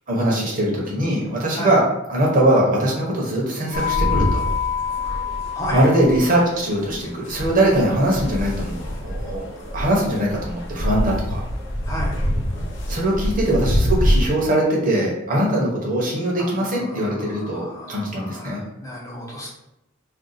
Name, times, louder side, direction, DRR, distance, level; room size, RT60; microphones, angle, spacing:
voice 1, 0.1-1.8 2.1-4.4 5.7-11.4 12.9-18.6, right 1 dB, 40° right, -3 dB, 0.8 m, -21 dB
sound 1, 3.7-14.3, left 1 dB, 65° left, 0.7 m, -25 dB
voice 2, 5.5-5.9 11.9-12.2 16.4-19.5, equal, 15° left, -4 dB, 0.7 m, -33 dB
2.5 x 2.2 x 4.0 m, 0.89 s
head